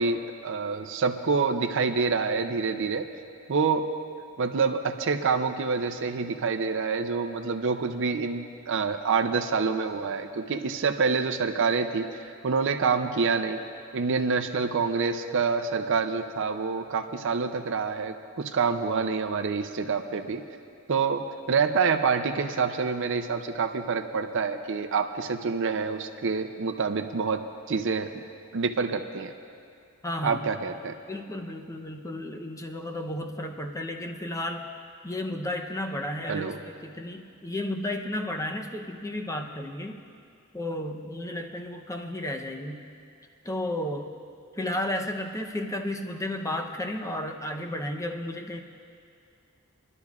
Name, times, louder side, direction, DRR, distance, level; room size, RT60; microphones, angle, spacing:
voice 1, 0.0-3.1 3.5-3.9 4.4-13.6 13.9-20.4 20.9-27.4 27.7-28.2 28.5-29.3 30.2-30.9 36.3-36.6, right 5 dB, 60° right, 7 dB, 0.5 m, -27 dB
voice 2, 30.0-30.5 31.1-34.7 35.0-40.0 40.5-42.9 43.4-44.1 44.6-48.6, left 1 dB, 15° left, 4 dB, 0.7 m, -33 dB
24.5 x 11.5 x 2.4 m, 2.4 s
head